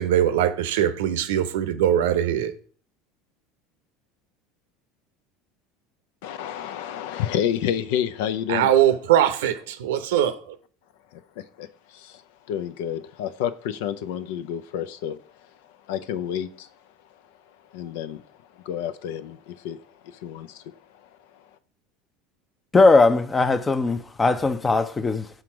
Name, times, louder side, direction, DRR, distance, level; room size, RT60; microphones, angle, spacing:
voice 1, 0.0-2.5 8.5-10.4, right 10 dB, 70° right, 0.7 m, -21 dB
voice 2, 6.2-8.7 11.1-12.2 12.5-16.7 17.7-18.3 18.6-19.8 20.0-21.4, left 10 dB, 65° left, 0.5 m, -30 dB
voice 3, 22.7-25.3, left 3 dB, 20° left, 0.7 m, -19 dB
5.9 x 3.9 x 5.9 m
figure-of-eight pair, 75°, 0 cm